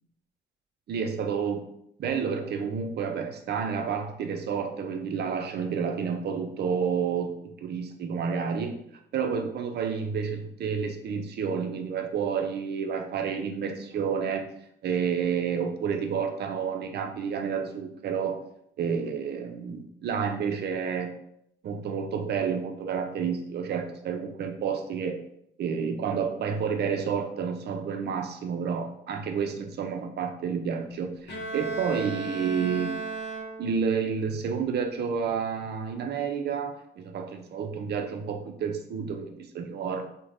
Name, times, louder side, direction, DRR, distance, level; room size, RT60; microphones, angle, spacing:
voice 1, 0.9-1.7 2.0-7.4 7.6-8.8 9.1-14.5 14.8-18.4 18.8-21.1 21.6-25.2 25.6-32.9 33.6-40.0, right 6 dB, 55° right, 5 dB, 0.5 m, -30 dB
Bowed string instrument, 31.3-34.0, right 3 dB, 55° left, 0.7 m, -35 dB
3.2 x 2.1 x 2.5 m, 0.74 s
cardioid pair, 90°, 20 cm